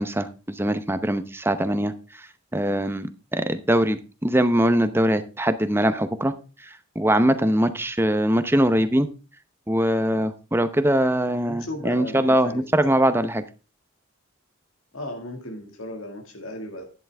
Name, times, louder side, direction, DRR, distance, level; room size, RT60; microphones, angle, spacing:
voice 1, 0.0-1.9 2.2-2.3 2.5-6.3 6.6-9.1 9.7-13.4, right 1 dB, 10° right, 10 dB, 0.8 m, -22 dB
voice 2, 11.4-13.1 14.9-16.8, left 1 dB, 75° left, 3 dB, 2.0 m, -36 dB
11.0 x 11.0 x 3.5 m, 0.32 s
head